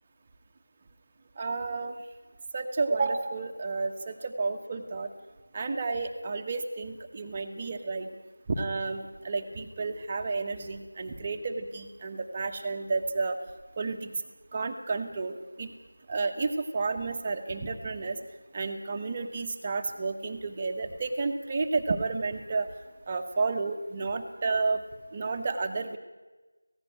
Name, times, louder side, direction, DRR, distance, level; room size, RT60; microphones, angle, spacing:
voice 1, 1.4-2.0 2.5-5.1 5.5-8.1 8.5-13.4 13.8-14.1 14.5-15.7 16.1-18.2 18.5-22.7 23.1-24.8 25.1-26.0, right 3 dB, 20° right, 4 dB, 1.2 m, -31 dB
17.5 x 16.0 x 9.9 m, 1.2 s
figure-of-eight pair, 170°, 0 cm